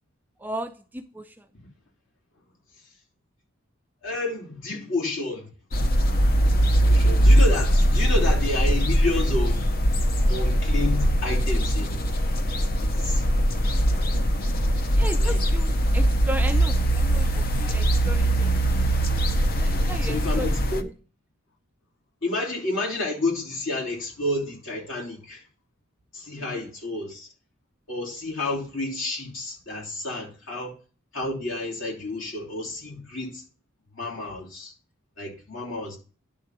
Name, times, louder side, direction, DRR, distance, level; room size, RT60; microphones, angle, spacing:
voice 1, 0.4-1.5 6.3-6.4 14.9-18.5 19.5-20.9 26.4-26.7, right 1 dB, 10° right, 0.4 m, -36 dB
voice 2, 4.0-5.5 6.9-9.7 10.3-12.0 12.8-13.3 15.2-15.4 20.0-20.8 22.2-25.4 26.1-27.3 27.9-30.7 31.1-33.4 33.9-34.7 35.2-36.0, left 2 dB, 65° left, 3.2 m, -30 dB
sound 1, 5.7-20.8, equal, 45° left, 0.7 m, -21 dB
10.5 x 3.8 x 5.9 m
head